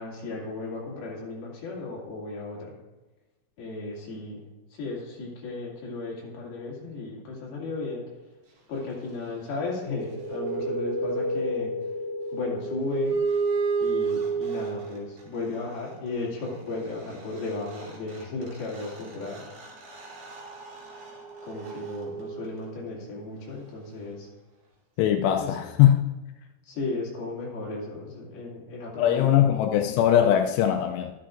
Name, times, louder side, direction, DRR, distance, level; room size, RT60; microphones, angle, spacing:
voice 1, 0.0-2.7 3.6-4.4 4.7-8.0 8.7-11.7 12.3-13.2 13.8-19.4 21.4-24.3 25.4-25.5 26.7-29.6, left 3 dB, 65° left, 4.2 m, -35 dB
sound 1, 9.8-15.2 17.1-17.2 17.4-22.9, right 3 dB, 65° right, 4.4 m, -31 dB
voice 2, 25.0-26.0 29.0-31.1, left 11 dB, 85° left, 2.7 m, -21 dB
13.0 x 11.5 x 2.5 m
omnidirectional pair, 4.8 m